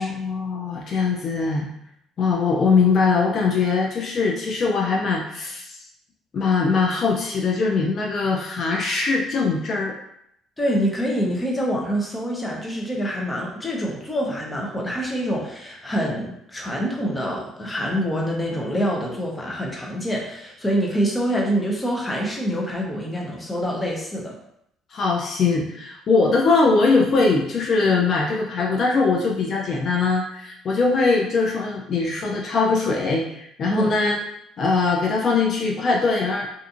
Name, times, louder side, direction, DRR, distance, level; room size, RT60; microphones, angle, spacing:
voice 1, 0.0-1.7 2.2-5.8 6.3-9.9 24.9-34.2 34.6-36.5, left 4 dB, 50° left, -1 dB, 0.4 m, -21 dB
voice 2, 10.6-24.4 33.7-33.9, equal, 15° left, -1 dB, 0.7 m, -26 dB
2.5 x 2.5 x 2.5 m, 0.76 s
cardioid pair, 90°, 0 cm